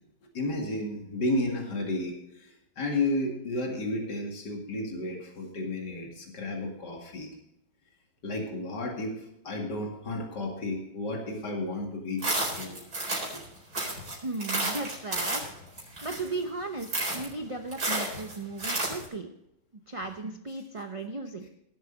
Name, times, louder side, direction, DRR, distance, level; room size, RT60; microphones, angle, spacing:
voice 1, 0.3-7.3 8.2-9.2 9.4-12.2 12.6-12.8 13.3-13.4, left 2 dB, 70° left, 0 dB, 2.9 m, -32 dB
sound 1, 12.2-13.4 13.7-16.4 16.8-17.3 17.7-19.1, right 2 dB, 55° right, 4.9 m, -31 dB
voice 2, 14.2-15.5 16.0-19.3 19.9-21.5, right 3 dB, 40° right, 5 dB, 0.5 m, -36 dB
18.0 x 8.0 x 4.0 m, 0.80 s
omnidirectional pair, 1.9 m